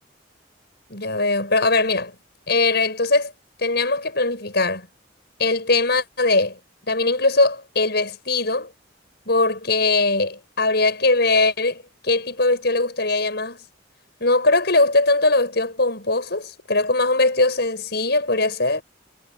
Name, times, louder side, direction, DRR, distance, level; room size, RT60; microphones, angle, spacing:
voice 1, 0.9-2.1 2.5-3.3 3.6-4.9 5.4-6.6 6.9-8.7 9.3-13.6 14.2-18.8, left 2 dB, 60° left, 7.9 m, -20 dB
head